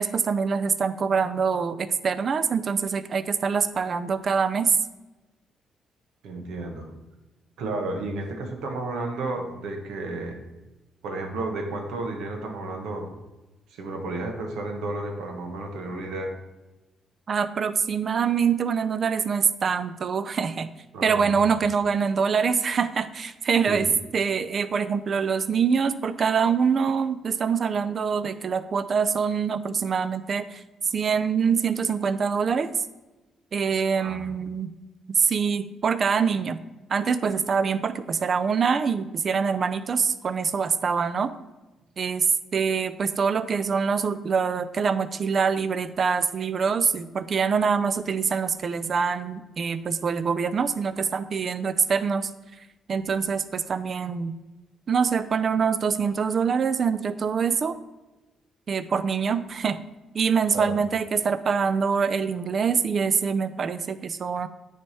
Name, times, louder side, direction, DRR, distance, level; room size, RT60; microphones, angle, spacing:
voice 1, 0.0-4.8 17.3-20.7 21.0-23.9 24.1-30.6 30.9-32.7 33.5-34.7 35.1-36.6 36.9-41.3 42.0-42.3 42.5-52.3 52.9-54.3 54.9-57.7 58.7-59.8 60.1-64.5, right 6 dB, 50° right, 13 dB, 0.4 m, -24 dB
voice 2, 6.2-6.9 7.6-10.4 11.0-13.2 13.7-16.3 20.9-21.6 23.7-23.9 33.9-34.3 60.5-60.8, right 2 dB, 85° right, 3 dB, 1.1 m, -32 dB
9.4 x 3.4 x 4.2 m, 1.1 s
cardioid pair, 90°, 0 cm